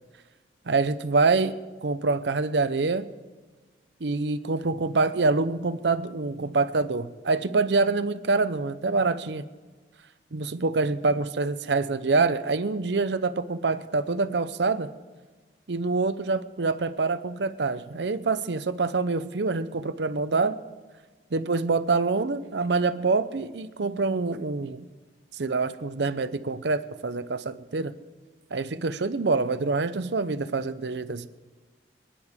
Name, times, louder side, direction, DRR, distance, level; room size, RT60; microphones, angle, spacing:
voice 1, 0.7-3.1 4.0-9.4 10.3-14.9 15.7-20.6 21.3-24.9 25.3-27.9 28.5-31.3, right 3 dB, 75° right, 12 dB, 0.7 m, -26 dB
26.5 x 10.0 x 3.6 m, 1.3 s
head